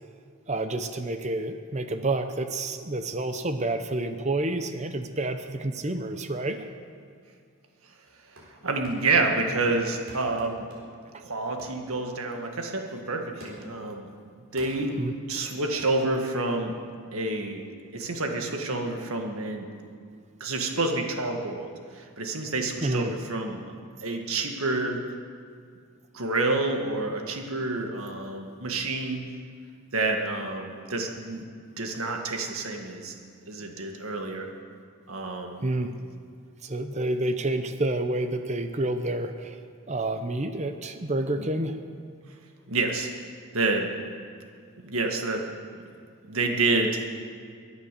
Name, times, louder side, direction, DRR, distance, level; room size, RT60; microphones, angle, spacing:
voice 1, 0.5-6.7 15.0-15.1 22.8-23.1 35.6-35.9 36.6-39.6 39.9-41.8, right 2 dB, 30° right, 8 dB, 0.7 m, -29 dB
sound 1, 8.1-8.6 8.8-9.2 9.6-11.0 11.6-11.8 12.3-12.5 13.4-13.8 14.6-14.9 15.8-16.0, equal, 55° right, 4.1 m, -47 dB
voice 2, 8.6-10.7 11.2-14.1 14.5-15.0 15.3-16.7 17.1-17.6 17.9-19.7 20.4-23.6 24.0-25.0 26.1-29.2 29.9-31.4 31.8-33.1 33.5-34.5 35.1-35.7 41.4-41.5 42.7-43.1 43.5-43.9 44.8-45.4 46.3-47.1, right 3 dB, 75° right, 3 dB, 1.8 m, -28 dB
23.5 x 8.2 x 6.8 m, 2.2 s
head